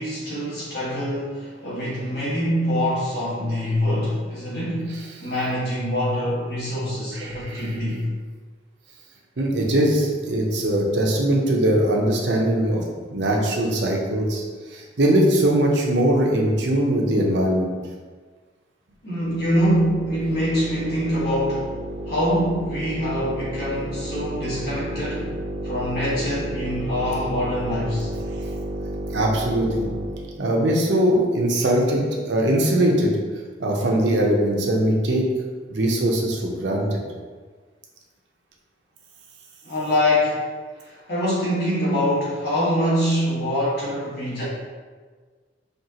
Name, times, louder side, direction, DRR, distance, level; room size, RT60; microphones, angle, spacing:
voice 1, 0.0-4.9 5.2-8.1 19.0-21.7 22.1-25.3 25.6-28.1 39.6-40.4 40.8-44.4, equal, 60° left, -9 dB, 1.5 m, -24 dB
voice 2, 7.1-7.7 9.4-12.8 13.1-14.4 14.7-17.7 29.1-29.9 30.4-33.1 33.6-35.2 35.7-37.0, right 1 dB, 80° right, -1 dB, 0.7 m, -21 dB
sound 1, 19.2-30.4, right 1 dB, 45° right, 0.4 m, -32 dB
4.5 x 2.9 x 2.8 m, 1.5 s
head